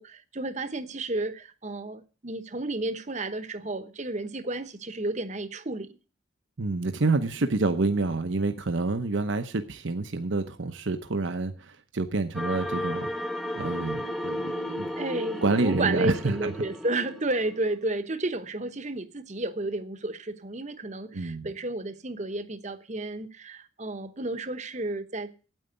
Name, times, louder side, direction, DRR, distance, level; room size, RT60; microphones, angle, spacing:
voice 1, 0.0-6.0 15.0-25.3, right 2 dB, 35° right, 0.9 m, -32 dB
voice 2, 6.6-13.1 13.6-14.9 15.4-16.5 21.1-21.5, right 3 dB, 70° right, 0.9 m, -28 dB
sound 1, 12.3-17.7, left 1 dB, ahead, 0.7 m, -34 dB
9.1 x 8.7 x 8.0 m
head